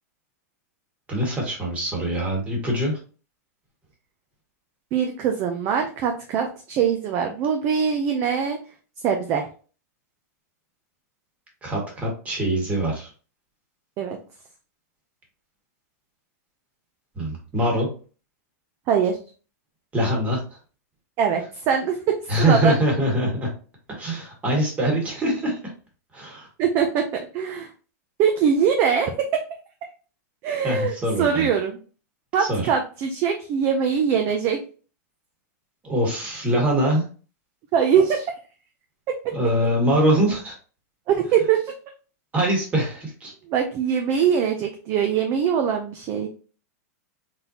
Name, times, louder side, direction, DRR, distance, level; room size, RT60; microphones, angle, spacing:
voice 1, 1.1-3.0 11.6-13.1 17.1-17.9 19.9-20.6 22.3-23.5 23.9-25.6 26.1-26.5 30.6-31.5 32.4-32.7 35.8-37.0 39.3-40.5 42.3-43.3, right 1 dB, 15° right, -1 dB, 1.6 m, -23 dB
voice 2, 4.9-8.6 9.0-9.5 14.0-14.2 18.9-19.2 21.2-22.8 26.6-27.1 27.3-27.7 28.2-29.4 30.4-31.8 32.3-34.6 37.7-38.3 39.1-39.3 41.1-41.7 43.5-46.3, right 7 dB, 30° right, 4 dB, 0.5 m, -22 dB
4.1 x 3.8 x 2.8 m, 0.38 s
supercardioid pair, 160°, 9 cm